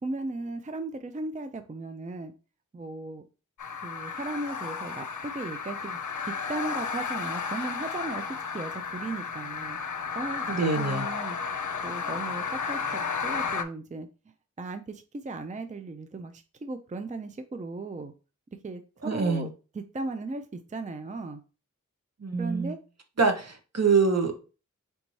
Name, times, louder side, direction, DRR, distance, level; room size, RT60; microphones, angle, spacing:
voice 1, 0.0-2.3 2.7-3.2 3.8-6.0 6.2-8.3 8.5-9.8 10.1-14.1 14.6-18.1 18.6-19.5 19.7-21.4 22.4-22.8, right 2 dB, 25° right, 8 dB, 0.4 m, -36 dB
sound 1, 3.6-13.6, left 5 dB, 70° left, 0.6 m, -33 dB
voice 2, 10.5-11.1 19.0-19.5 22.2-22.7 23.2-24.3, right 4 dB, 55° right, 5 dB, 0.9 m, -25 dB
4.0 x 3.4 x 3.1 m, 0.34 s
wide cardioid pair, 45°, 30 cm